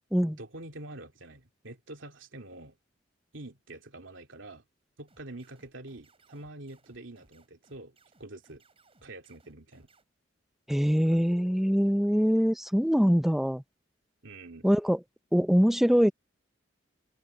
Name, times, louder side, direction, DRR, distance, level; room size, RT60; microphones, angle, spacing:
voice 1, 0.3-2.8 3.3-4.6 5.0-8.6 9.0-9.9 11.1-11.3 14.2-14.7, right 2 dB, 80° right, 2.8 m, -46 dB
sound 1, 5.1-10.0, right 2 dB, 30° right, 7.3 m, -64 dB
voice 2, 10.7-13.6 14.6-15.0 15.3-16.1, equal, ahead, 0.5 m, -23 dB
head